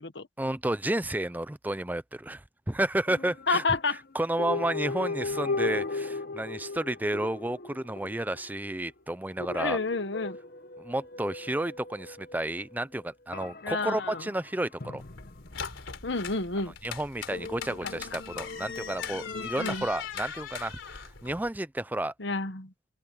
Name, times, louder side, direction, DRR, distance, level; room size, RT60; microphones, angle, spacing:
voice 1, 0.4-9.8 10.8-15.0 16.8-22.1, right 1 dB, 10° right, 0.5 m, -31 dB
sound 1, 3.1-3.8 4.4-8.9 9.4-12.7 13.3-15.9 17.3-19.5, left 3 dB, 50° left, 1.0 m, -37 dB
voice 2, 3.5-4.0 9.5-10.4 13.6-14.2 16.0-16.7 19.6-19.9 22.2-22.7, left 3 dB, 65° left, 1.4 m, -29 dB
sound 2, 15.0-21.5, left 6 dB, 85° left, 3.7 m, -40 dB
open air
head